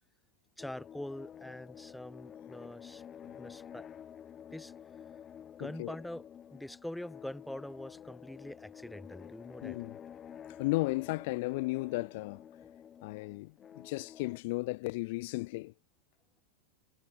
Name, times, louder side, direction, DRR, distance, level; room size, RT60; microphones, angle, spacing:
sound 1, 0.6-14.4, left 9 dB, 25° left, 1.2 m, -50 dB
voice 1, 0.6-3.0 3.4-3.9 4.5-4.7 5.6-6.3 6.5-9.8 10.8-10.9, left 1 dB, 5° left, 0.7 m, -44 dB
voice 2, 5.6-5.9 9.6-10.0 10.6-12.4 13.0-15.7, left 23 dB, 50° left, 1.0 m, -34 dB
figure-of-eight pair, 90°, 0 cm